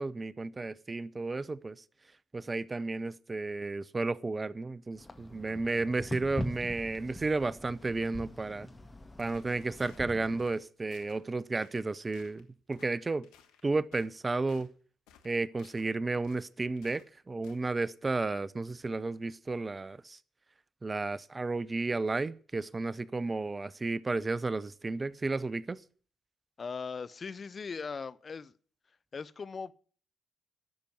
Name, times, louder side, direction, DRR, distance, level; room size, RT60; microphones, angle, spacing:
voice 1, 0.0-1.7 2.3-8.7 9.2-13.3 13.6-14.7 15.2-20.2 20.8-25.8, right 3 dB, 30° right, 0.7 m, -33 dB
sound 1, 5.0-10.4, left 1 dB, 25° left, 2.0 m, -42 dB
sound 2, 9.2-10.0 10.4-10.6 10.9-11.2 11.5-11.9 12.1-12.4 12.7-12.9 13.2-14.7 15.1-15.9 16.2-17.1 17.4-17.6, left 8 dB, 80° left, 1.3 m, -60 dB
voice 2, 26.6-28.5 29.1-29.7, left 5 dB, 45° left, 0.7 m, -39 dB
12.0 x 6.9 x 9.3 m
hypercardioid pair, 50°, 0 cm